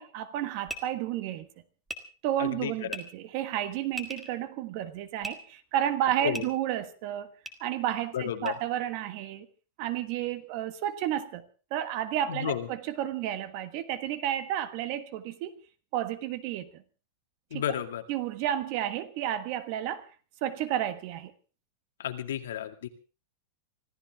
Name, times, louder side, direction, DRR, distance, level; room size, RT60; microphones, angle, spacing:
voice 1, 0.0-1.5 2.2-7.3 7.6-9.5 9.8-11.4 11.7-15.5 15.9-16.8 17.5-17.6 18.1-20.1 20.4-21.3, right 11 dB, 35° right, 1.3 m, -31 dB
sound 1, 0.6-0.8 1.9-2.0 2.9-3.0 3.9-4.3 5.2-5.3 6.3-6.4 7.4-7.5 8.4-8.5, right 1 dB, 5° right, 1.5 m, -37 dB
voice 2, 2.4-3.0 6.2-6.4 8.1-8.5 12.3-12.7 17.5-18.0 22.0-22.9, left 10 dB, 85° left, 2.2 m, -32 dB
25.0 x 14.5 x 3.6 m
supercardioid pair, 175°, 0 cm